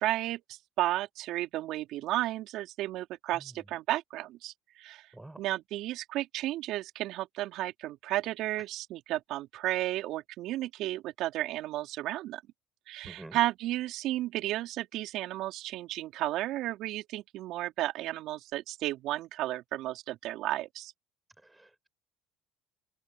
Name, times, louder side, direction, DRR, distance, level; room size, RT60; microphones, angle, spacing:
voice 1, 0.0-5.0 5.4-12.4 12.9-20.9, right 15 dB, 65° right, 4.6 m, -33 dB
voice 2, 13.0-13.4 21.4-21.9, right 1 dB, 10° right, 6.7 m, -48 dB
open air
hypercardioid pair, 75°, 0 cm